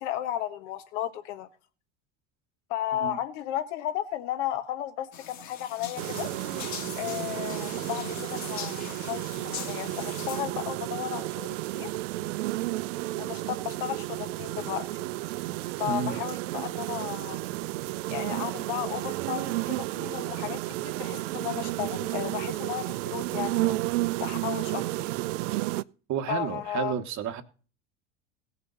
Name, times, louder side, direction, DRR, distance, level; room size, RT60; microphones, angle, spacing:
voice 1, 0.0-1.5 2.7-6.3 7.0-11.9 13.2-15.0 15.8-17.5 18.1-23.8 24.2-25.1 26.3-26.9, left 12 dB, 70° left, 1.4 m, -34 dB
sound 1, 5.1-10.4, left 8 dB, 50° left, 2.1 m, -41 dB
sound 2, 6.0-25.8, right 19 dB, 75° right, 0.5 m, -32 dB
voice 2, 26.1-27.4, right 8 dB, 50° right, 1.5 m, -31 dB
17.5 x 7.0 x 4.0 m
hypercardioid pair, 80°, 37 cm